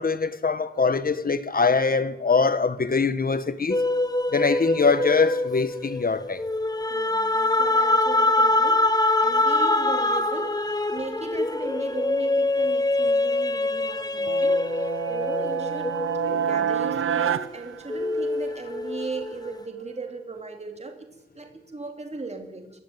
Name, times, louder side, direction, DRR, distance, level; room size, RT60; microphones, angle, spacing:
voice 1, 0.0-3.8 4.3-6.4, left 4 dB, 45° left, 1.4 m, -23 dB
sound 1, 3.7-17.4 17.9-19.5, left 2 dB, 20° left, 1.3 m, -24 dB
voice 2, 6.9-10.6 10.9-15.9 16.2-22.7, right 3 dB, 30° right, 2.8 m, -37 dB
sound 2, 14.2-18.6, right 8 dB, 85° right, 0.7 m, -28 dB
23.5 x 13.5 x 9.3 m
wide cardioid pair, 95°, 21 cm